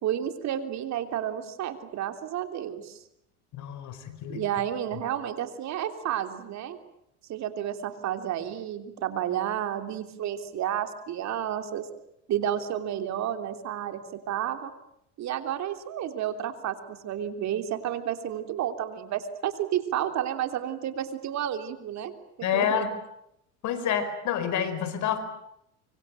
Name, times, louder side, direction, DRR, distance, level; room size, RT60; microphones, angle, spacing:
voice 1, 0.0-3.0 4.3-6.8 7.3-11.9 12.3-14.7 15.2-22.1 22.4-22.9, right 10 dB, 50° right, 8 dB, 3.3 m, -31 dB
voice 2, 3.5-4.4 22.4-22.9 23.6-25.2, left 8 dB, 55° left, 11 dB, 4.9 m, -28 dB
25.0 x 24.5 x 9.0 m, 0.80 s
supercardioid pair, 105°, 35 cm